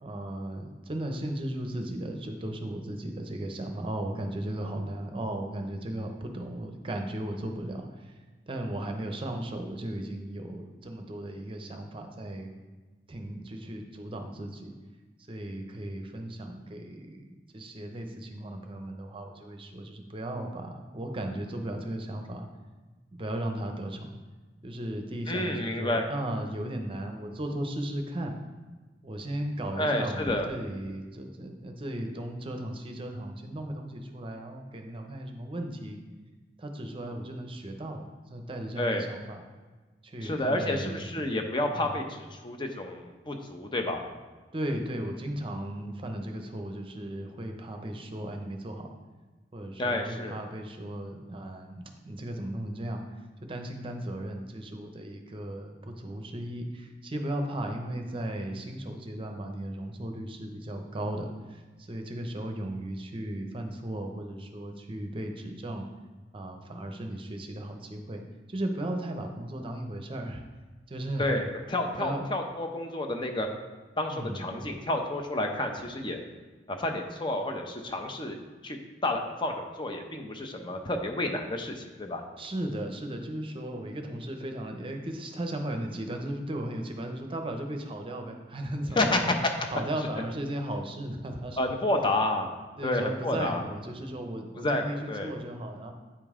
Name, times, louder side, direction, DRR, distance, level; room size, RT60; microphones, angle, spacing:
voice 1, 0.0-8.1 8.5-12.5 13.1-14.7 15.3-22.5 23.1-24.1 24.6-28.4 29.0-36.0 36.6-38.0 38.3-39.4 40.0-41.2 41.8-42.0 44.5-48.9 49.5-53.0 53.5-65.9 66.3-68.2 68.5-70.4 70.9-71.2 72.0-72.2 74.1-74.5 82.4-89.3 89.7-91.6 92.8-95.9, right 1 dB, 30° right, 4 dB, 0.7 m, -36 dB
voice 2, 25.3-26.1 29.8-30.5 38.8-39.1 40.2-44.0 49.8-50.4 71.2-73.5 74.0-76.2 76.7-82.2 89.0-89.5 91.6-92.5 92.8-93.6 94.6-95.3, left 1 dB, 30° left, 4 dB, 0.7 m, -30 dB
8.7 x 5.2 x 3.7 m, 1.3 s
head